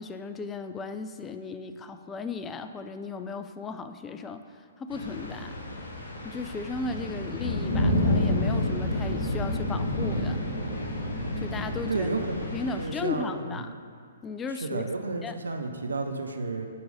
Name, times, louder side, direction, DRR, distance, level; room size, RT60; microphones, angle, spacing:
voice 1, 0.0-4.4 4.8-5.5 6.2-10.4 11.4-12.1 12.5-13.7 14.2-14.8 15.2-15.4, left 4 dB, 15° left, 9 dB, 0.3 m, -35 dB
sound 1, 4.9-12.8, left 1 dB, 70° left, 1.2 m, -29 dB
voice 2, 11.9-13.7 14.5-16.7, right 3 dB, 75° right, 5 dB, 0.6 m, -32 dB
8.4 x 3.1 x 5.3 m, 2.2 s
figure-of-eight pair, 125°, 0 cm